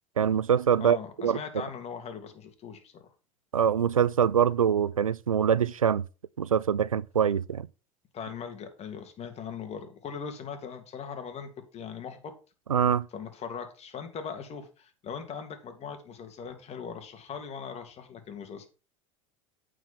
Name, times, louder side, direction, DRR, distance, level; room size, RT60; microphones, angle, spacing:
voice 1, 0.2-1.0 1.2-1.4 3.5-6.0 6.4-7.7 12.7-13.1, right 8 dB, 90° right, 0.4 m, -24 dB
voice 2, 0.8-3.1 8.1-12.3 13.1-18.7, left 6 dB, 40° left, 2.9 m, -40 dB
9.1 x 5.2 x 5.4 m
figure-of-eight pair, 75°, 17 cm